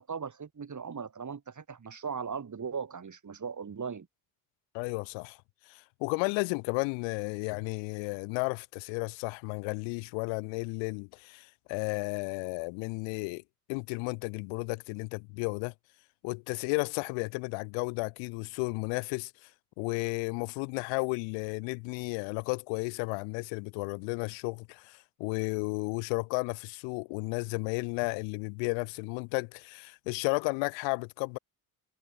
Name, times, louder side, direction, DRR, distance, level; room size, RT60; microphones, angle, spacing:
voice 1, 0.0-4.1, right 6 dB, 40° right, 7.0 m, -38 dB
voice 2, 4.7-5.4 5.7-13.4 13.7-15.7 16.2-19.5 19.8-31.4, left 34 dB, 70° left, 1.1 m, -33 dB
hypercardioid pair, 50°, 46 cm